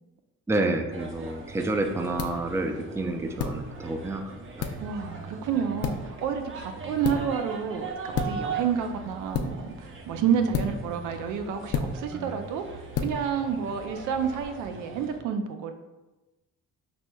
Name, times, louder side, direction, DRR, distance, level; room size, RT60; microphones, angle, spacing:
voice 1, 0.5-4.7 12.1-12.4, right 2 dB, 10° right, 6 dB, 0.4 m, -29 dB
sound 1, 0.9-15.2, right 4 dB, 45° right, 0.7 m, -40 dB
sound 2, 1.0-14.4, left 5 dB, 55° left, 0.5 m, -35 dB
voice 2, 4.8-12.7 13.0-15.7, right 7 dB, 85° right, 7 dB, 0.5 m, -29 dB
6.0 x 3.1 x 2.2 m, 1.1 s
cardioid pair, 90°, 30 cm